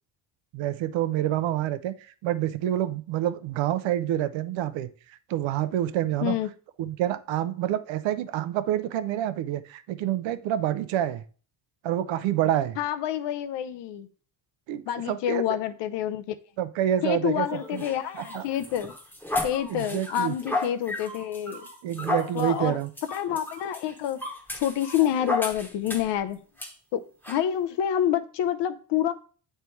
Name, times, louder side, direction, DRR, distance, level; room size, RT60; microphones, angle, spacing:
voice 1, 0.5-1.9 2.2-4.9 5.3-6.4 6.8-11.2 11.8-12.8 14.7-15.6 16.6-17.5 17.7-17.8 18.3-18.4 19.7-20.4 21.8-22.9, right 12 dB, 85° right, 0.7 m, -27 dB
voice 2, 12.8-14.1 14.9-16.4 17.0-18.9 19.4-21.7 22.3-22.8 23.1-24.2 24.6-26.4 26.9-29.1, left 10 dB, 70° left, 0.7 m, -28 dB
sound 1, 17.5-26.2 26.6-26.7 27.2-27.4, left 2 dB, 5° left, 1.0 m, -34 dB
8.2 x 3.4 x 4.5 m
cardioid pair, 170°, 45 cm